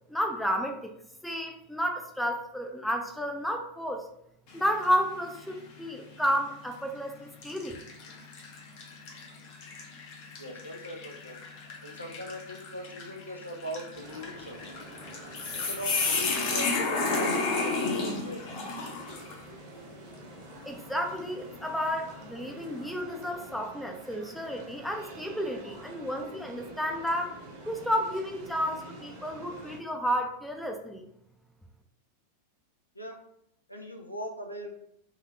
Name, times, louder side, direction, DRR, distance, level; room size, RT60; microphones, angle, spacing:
voice 1, 0.1-0.9 1.2-4.1 4.5-7.8 20.6-27.4 27.7-31.1, equal, ahead, 4 dB, 0.4 m, -31 dB
sound 1, 4.5-5.0 5.5-5.6 6.6-6.8 7.4-19.4, left 3 dB, 45° left, 0.8 m, -33 dB
voice 2, 10.4-11.4 11.8-14.7 15.6-18.4 32.9-33.2 33.7-34.7, equal, 90° left, 2 dB, 0.5 m, -40 dB
sound 2, 13.9-29.8, right 2 dB, 50° right, 0.9 m, -47 dB
4.0 x 2.7 x 2.5 m, 0.75 s
figure-of-eight pair, 90°, 0 cm